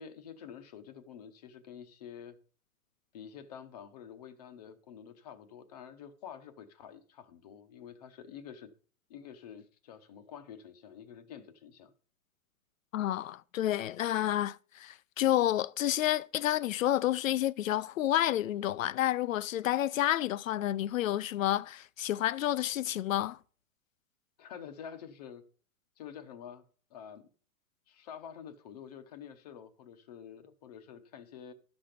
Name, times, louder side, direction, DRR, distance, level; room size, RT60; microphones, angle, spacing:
voice 1, 0.0-2.4 3.1-8.7 9.1-11.9 24.4-25.4 26.0-26.6 26.9-27.3 27.9-31.5, left 8 dB, 30° left, 0.7 m, -48 dB
voice 2, 12.9-23.4, left 13 dB, 65° left, 0.5 m, -30 dB
12.5 x 6.0 x 5.0 m
hypercardioid pair, 170°, 43 cm